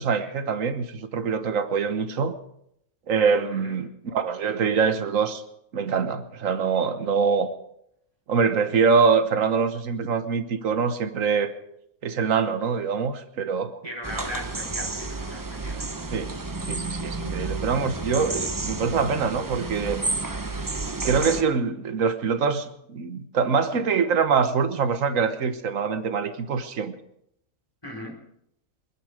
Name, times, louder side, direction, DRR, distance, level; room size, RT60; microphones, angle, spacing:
voice 1, 0.0-2.3 3.1-5.4 5.7-7.5 8.3-11.5 12.0-13.7 16.1-16.3 16.7-20.0 21.0-27.0, right 5 dB, 65° right, 9 dB, 1.6 m, -24 dB
voice 2, 13.8-15.8 27.8-28.2, equal, 15° left, 0 dB, 4.4 m, -37 dB
sound 1, 14.0-21.4, right 3 dB, 20° right, 0.6 m, -31 dB
28.5 x 10.0 x 5.0 m, 0.76 s
omnidirectional pair, 1.5 m